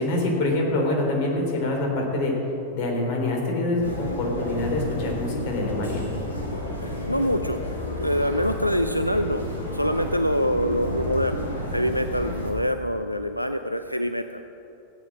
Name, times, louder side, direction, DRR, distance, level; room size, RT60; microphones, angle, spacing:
voice 1, 0.0-2.3 2.7-6.0, left 2 dB, 45° left, 0 dB, 3.3 m, -25 dB
sound 1, 3.8-12.5, left 1 dB, 70° left, 2.7 m, -31 dB
voice 2, 6.8-7.6 8.0-9.4 9.7-14.4, equal, 90° left, 8 dB, 0.4 m, -25 dB
15.5 x 8.8 x 6.1 m, 2.9 s
figure-of-eight pair, 90°, 0 cm